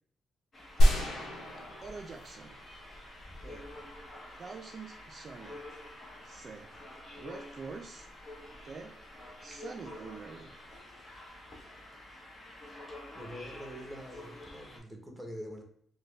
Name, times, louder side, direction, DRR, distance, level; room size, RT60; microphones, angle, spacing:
sound 1, 0.5-14.8, left 1 dB, 35° left, 1.0 m, -49 dB
sound 2, 0.8-2.7 3.1-3.2, equal, 80° left, 1.0 m, -27 dB
voice 1, 0.8-1.1 1.8-2.6 3.3-3.7 4.3-5.6 6.2-6.7 7.2-8.1 8.6-8.9 9.4-10.5, right 4 dB, 45° right, 3 dB, 0.4 m, -45 dB
voice 2, 13.1-15.6, equal, ahead, 2 dB, 1.0 m, -44 dB
4.1 x 2.2 x 3.2 m, 0.62 s
cardioid pair, 90°, 0 cm